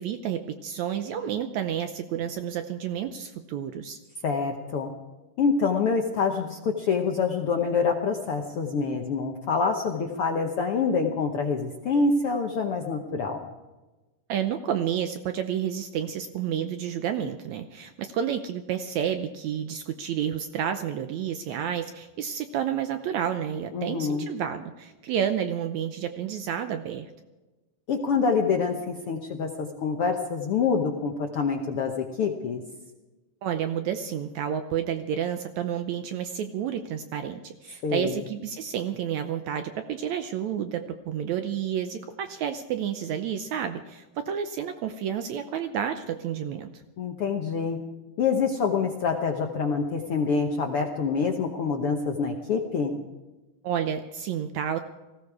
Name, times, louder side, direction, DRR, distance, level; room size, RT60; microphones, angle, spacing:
voice 1, 0.0-4.0 14.3-27.1 33.4-46.8 53.6-54.8, right 9 dB, 75° right, 8 dB, 1.8 m, -30 dB
voice 2, 4.2-4.9 5.4-13.5 23.7-24.3 27.9-32.6 37.8-38.2 47.0-47.8 48.2-53.0, left 5 dB, 70° left, 3 dB, 1.4 m, -26 dB
19.0 x 16.0 x 4.8 m, 1.1 s
omnidirectional pair, 3.9 m